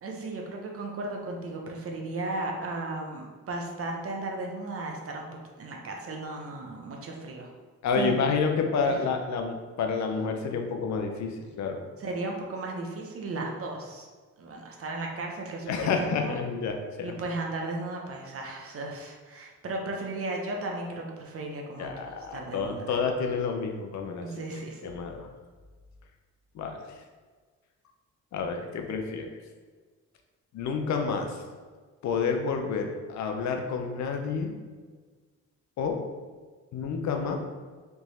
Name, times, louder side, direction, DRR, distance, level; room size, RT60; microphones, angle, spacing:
voice 1, 0.0-7.5 8.0-8.1 8.8-9.0 12.0-14.1 14.4-16.4 17.0-23.0 24.2-24.8, right 2 dB, 50° right, 1 dB, 0.9 m, -35 dB
voice 2, 7.8-11.8 15.7-17.1 21.8-24.3 24.8-25.3 26.5-26.8 28.3-29.3 30.5-31.4 32.0-34.5 35.8-36.0 36.7-37.4, left 5 dB, 65° left, 4 dB, 0.7 m, -29 dB
3.5 x 3.0 x 4.2 m, 1.4 s
cardioid pair, 90°, 30 cm